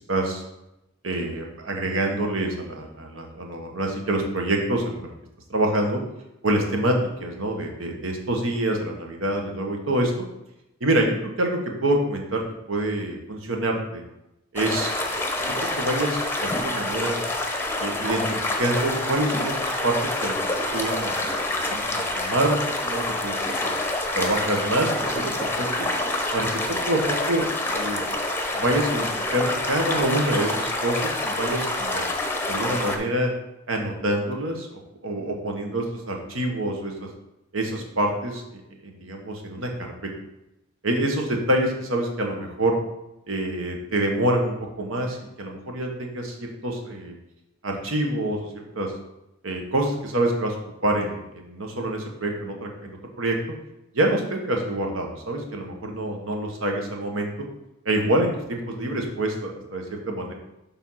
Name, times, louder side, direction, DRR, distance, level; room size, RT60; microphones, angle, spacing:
voice 1, 0.1-0.4 1.0-5.1 5.5-6.0 6.4-10.1 10.8-14.0 14.5-14.9 15.8-17.2 17.8-20.4 20.7-23.4 23.6-23.7 24.1-25.7 26.3-27.5 27.7-28.1 28.5-32.0 32.5-33.3 33.7-34.7 35.0-37.1 37.5-38.4 38.8-39.9 40.8-42.7 43.3-47.2 47.6-48.9 49.4-50.6 50.8-53.4 53.9-57.3 57.8-60.3, right 1 dB, 85° right, 2 dB, 1.3 m, -26 dB
sound 1, 14.6-33.0, left 2 dB, 10° left, 0.7 m, -27 dB
7.1 x 3.5 x 5.6 m, 0.89 s
head